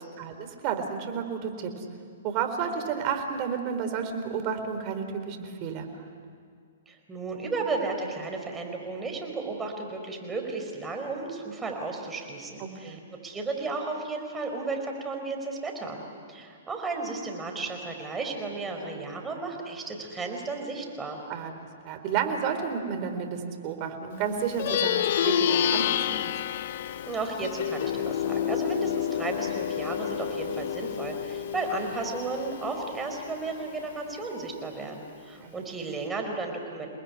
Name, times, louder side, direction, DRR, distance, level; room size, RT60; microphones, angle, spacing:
voice 1, 0.2-1.8 2.2-6.0 12.6-13.0 21.3-21.6 21.8-26.3 35.4-35.5, right 7 dB, 40° right, 6 dB, 4.1 m, -31 dB
voice 2, 6.9-16.0 16.3-21.2 27.0-36.9, right 3 dB, 15° right, 2 dB, 4.8 m, -34 dB
Plucked string instrument, 24.5-34.2, left 9 dB, 60° left, 0.8 m, -29 dB
29.5 x 20.0 x 9.8 m, 2.1 s
hypercardioid pair, 125°, 0 cm